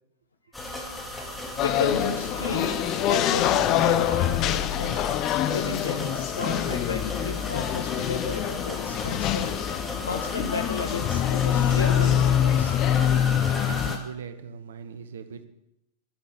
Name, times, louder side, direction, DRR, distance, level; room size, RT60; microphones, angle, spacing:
sound 1, 0.5-14.0, left 1 dB, 5° left, 2.5 m, -36 dB
voice 1, 1.6-9.6 10.0-12.8, left 4 dB, 75° left, 6 dB, 1.5 m, -33 dB
sound 2, 1.6-14.0, left 11 dB, 35° left, 0.6 m, -25 dB
voice 2, 13.6-15.5, right 6 dB, 65° right, 9 dB, 1.3 m, -39 dB
11.0 x 10.5 x 6.9 m, 0.83 s
figure-of-eight pair, 90°, 0 cm